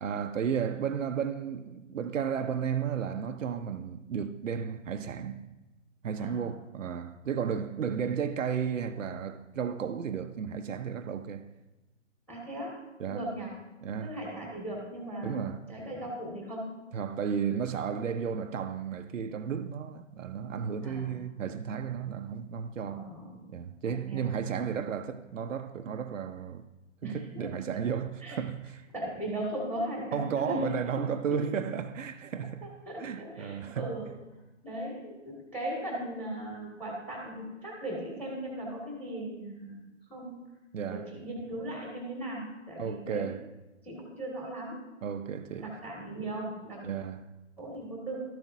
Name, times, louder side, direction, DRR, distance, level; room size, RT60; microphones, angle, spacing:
voice 1, 0.0-5.5 6.0-11.5 13.0-13.2 13.8-14.2 15.2-15.7 16.9-23.1 23.5-26.6 27.0-28.8 30.1-32.7 33.0-34.0 40.7-41.1 42.8-43.4 45.0-45.7 46.8-47.3, right 7 dB, 80° right, 0.7 m, -33 dB
voice 2, 6.2-6.5 12.3-12.7 13.1-13.5 14.0-16.6 20.8-21.2 22.9-23.4 23.8-24.3 24.7-24.9 27.0-27.5 28.2-28.4 28.9-30.7 31.3-31.5 32.9-34.1 34.6-40.4 40.9-43.3 43.8-44.8 45.6-46.8 47.6-48.2, right 1 dB, 5° left, 2.0 m, -38 dB
13.0 x 7.5 x 2.7 m
hypercardioid pair, 140°, 38 cm